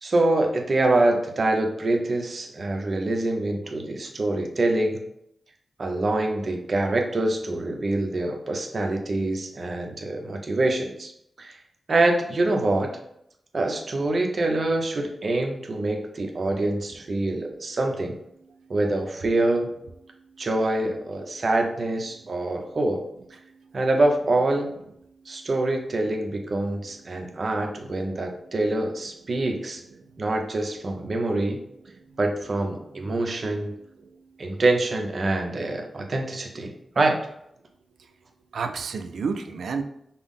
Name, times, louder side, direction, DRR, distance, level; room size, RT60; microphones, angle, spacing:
voice 1, 0.0-5.0 5.8-11.1 11.4-11.6 11.9-12.9 13.5-18.2 18.7-19.7 20.4-23.1 23.7-24.7 25.3-29.8 30.2-31.6 32.2-33.7 34.4-37.2, right 2 dB, 55° right, 3 dB, 0.7 m, -25 dB
voice 2, 38.5-39.8, right 5 dB, 90° right, 6 dB, 0.4 m, -30 dB
5.5 x 2.0 x 3.6 m, 0.76 s
cardioid pair, 65°, 0 cm